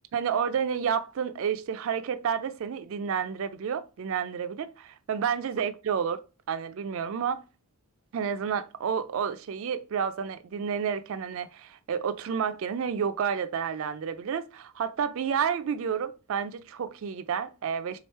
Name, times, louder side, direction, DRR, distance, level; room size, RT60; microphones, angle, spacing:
voice 1, 0.1-6.2 6.5-7.4 8.1-18.0, right 7 dB, 65° right, 0.3 m, -30 dB
3.5 x 3.1 x 4.4 m
head